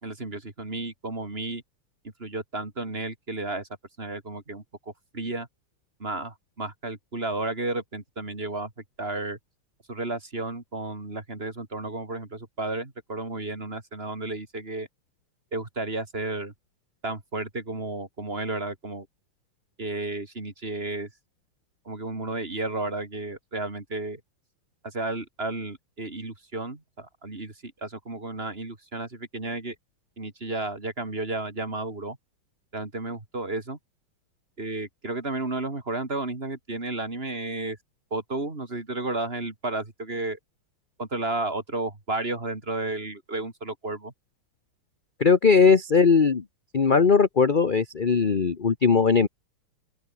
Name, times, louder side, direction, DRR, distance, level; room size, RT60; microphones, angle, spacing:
voice 1, 0.0-1.6 2.2-3.7 4.0-4.6 5.1-5.5 6.0-8.7 9.0-9.4 9.9-14.9 15.5-16.5 17.0-19.1 19.8-21.1 21.8-24.2 24.8-29.7 30.2-32.2 32.7-33.8 34.6-37.8 38.1-40.4 41.0-44.1, right 2 dB, 25° right, 3.2 m, -32 dB
voice 2, 45.2-46.4 46.7-49.3, left 5 dB, 35° left, 0.9 m, -19 dB
open air
omnidirectional pair, 2.3 m